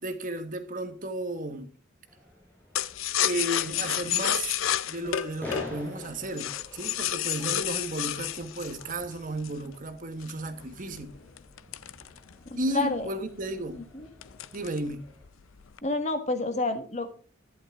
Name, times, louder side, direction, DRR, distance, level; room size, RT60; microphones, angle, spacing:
voice 1, 0.0-1.7 3.2-4.6 4.9-11.1 12.6-13.8 14.5-15.0, right 1 dB, 40° right, 1.4 m, -34 dB
sound 1, 2.0-15.3, left 2 dB, 10° left, 5.9 m, -47 dB
sound 2, 2.8-9.7 10.2-12.7 13.0-13.1 13.4-13.8 14.2-14.9 15.2-15.8, left 11 dB, 90° left, 0.6 m, -30 dB
voice 2, 12.7-13.1 13.7-14.1 15.8-17.2, left 2 dB, 35° left, 1.5 m, -29 dB
11.5 x 11.0 x 3.6 m
head